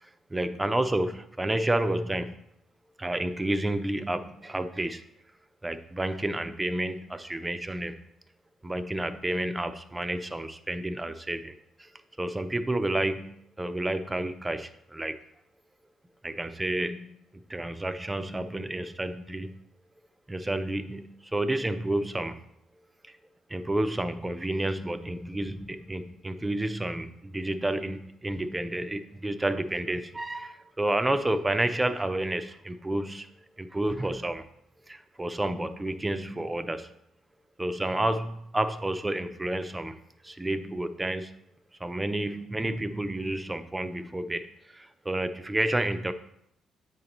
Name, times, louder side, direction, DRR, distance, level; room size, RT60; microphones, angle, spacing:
voice 1, 0.0-2.4 3.0-5.0 5.6-7.9 8.6-11.5 11.8-11.9 12.2-15.2 16.2-17.1 17.5-19.5 20.3-22.4 23.5-33.3 33.6-34.5 34.9-36.9 37.6-41.3 41.8-46.1, right 1 dB, 15° right, 10 dB, 0.5 m, -30 dB
7.9 x 2.9 x 5.2 m, 0.76 s
cardioid pair, 90°, 0 cm